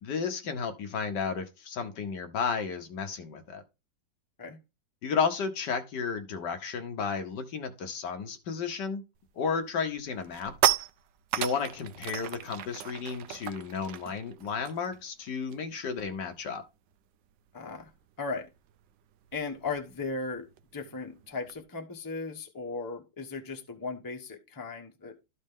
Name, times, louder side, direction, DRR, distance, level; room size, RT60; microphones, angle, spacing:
voice 1, 0.0-3.6 5.0-9.0 9.4-10.5 11.4-16.6, left 5 dB, 70° left, 1.5 m, -33 dB
sound 1, 9.2-9.5 9.9-15.8 16.1-16.3 16.6-21.6, right 12 dB, 80° right, 1.3 m, -35 dB
voice 2, 17.5-17.9 18.2-18.5 19.3-25.2, left 4 dB, 15° left, 0.9 m, -37 dB
13.0 x 4.3 x 3.5 m
omnidirectional pair, 2.0 m